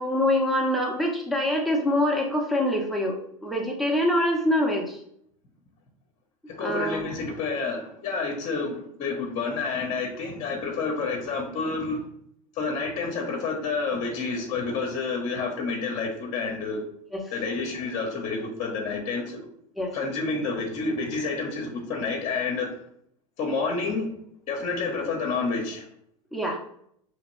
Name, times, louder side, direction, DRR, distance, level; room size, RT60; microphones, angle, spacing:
voice 1, 0.0-5.0 6.6-7.1 17.1-17.2 19.8-20.0 26.3-26.6, left 1 dB, ahead, 0 dB, 1.1 m, -25 dB
voice 2, 6.5-12.0 12.5-16.8 17.3-19.4 19.9-22.8 23.4-24.1 24.5-25.8, left 4 dB, 40° left, -1 dB, 1.1 m, -29 dB
4.9 x 3.1 x 3.2 m, 0.69 s
hypercardioid pair, 95°, 18 cm